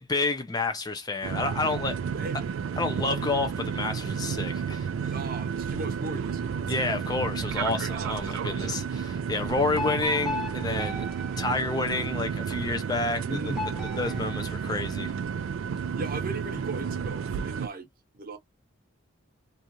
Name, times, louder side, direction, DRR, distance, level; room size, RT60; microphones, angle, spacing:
voice 1, 0.0-2.0 2.8-5.1 6.7-11.1 11.4-13.4 14.0-15.1, left 3 dB, 20° left, 0.4 m, -29 dB
sound 1, 1.2-17.7, right 6 dB, 70° right, 0.3 m, -32 dB
voice 2, 5.1-6.9 7.9-8.8 13.3-13.7 16.0-17.9 18.1-18.4, right 2 dB, 45° right, 0.8 m, -38 dB
sound 2, 9.7-12.4 13.5-15.3, left 3 dB, ahead, 0.8 m, -38 dB
2.6 x 2.4 x 2.9 m
head